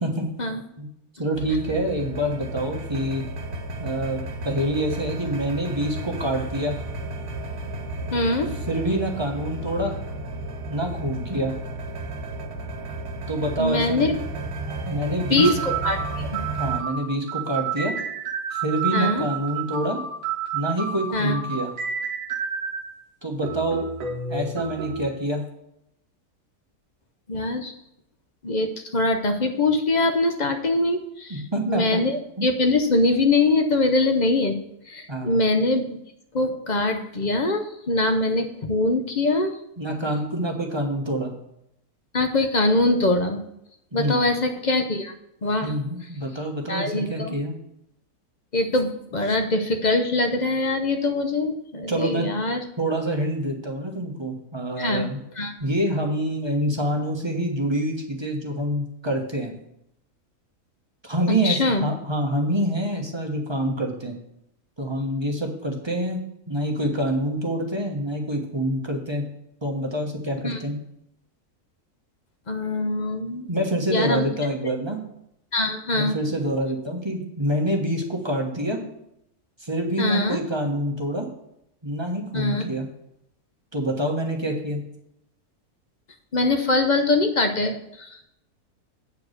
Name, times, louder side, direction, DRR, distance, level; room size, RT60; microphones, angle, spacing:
voice 1, 0.0-0.3 0.8-0.9 1.2-3.2 3.8-6.8 8.7-9.9 10.7-11.5 13.3-14.1 14.9-15.5 16.6-17.9 18.5-20.0 20.5-21.7 23.2-23.9 24.3-25.4 31.3-32.0 32.4-32.5 35.1-35.4 39.8-41.3 43.9-44.2 45.6-47.6 51.9-52.3 52.8-55.2 55.6-59.5 61.0-64.1 64.8-66.2 66.5-69.2 69.6-70.8 73.5-75.0 75.9-78.8 79.6-81.3 81.8-82.9 83.7-84.8, right 1 dB, 20° right, 1 dB, 1.1 m, -26 dB
sound 1, 1.3-16.8, right 2 dB, 85° right, 1.4 m, -33 dB
voice 2, 8.1-8.5 13.6-14.1 15.3-16.4 18.9-19.2 21.1-21.4 27.3-27.7 28.4-34.5 34.9-36.0 36.3-39.6 42.1-43.4 43.9-45.1 45.4-45.8 46.7-47.3 48.5-52.6 54.8-55.0 55.4-55.5 61.4-61.8 70.4-70.6 72.5-73.5 73.9-74.3 75.5-76.2 80.0-80.4 82.3-82.7 86.3-88.2, left 2 dB, 40° left, 6 dB, 0.6 m, -23 dB
sound 2, 14.7-14.8 15.4-22.9 23.4-25.1, right 6 dB, 65° right, 1.2 m, -30 dB
8.4 x 4.7 x 6.5 m, 0.80 s
omnidirectional pair, 1.6 m